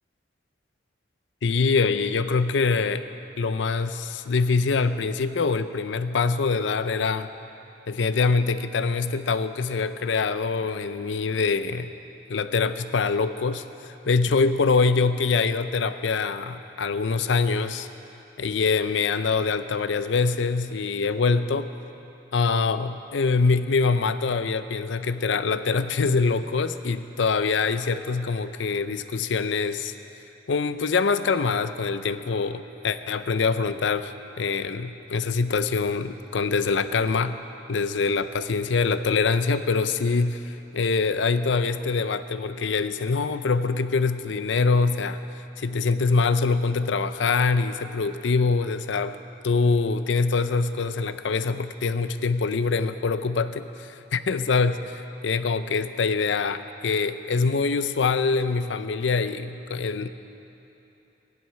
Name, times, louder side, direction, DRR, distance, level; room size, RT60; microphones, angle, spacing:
voice 1, 1.4-3.0 3.4-7.3 7.9-11.9 12.3-17.9 18.4-21.7 22.3-29.9 30.5-37.4 37.7-45.2 45.6-49.2 49.4-60.1, left 4 dB, 85° left, 12 dB, 0.5 m, -24 dB
15.5 x 11.0 x 5.7 m, 3.0 s
head